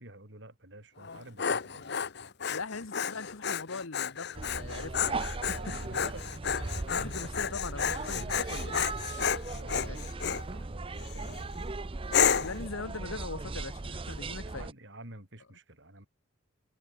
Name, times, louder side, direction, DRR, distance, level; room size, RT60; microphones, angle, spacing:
voice 1, 0.0-2.0 5.4-6.3 7.9-8.8 9.5-11.8 14.4-16.1, right 1 dB, 60° right, 5.4 m, -50 dB
Dog, 1.0-10.5 11.0-11.4 12.1-12.6, left 7 dB, 55° left, 0.9 m, -31 dB
voice 2, 2.5-5.2 5.5-5.7 6.9-8.8 9.8-10.0 12.3-14.7, left 3 dB, 80° left, 1.3 m, -41 dB
sound 1, 4.3-14.7, right 3 dB, 25° right, 0.6 m, -38 dB
head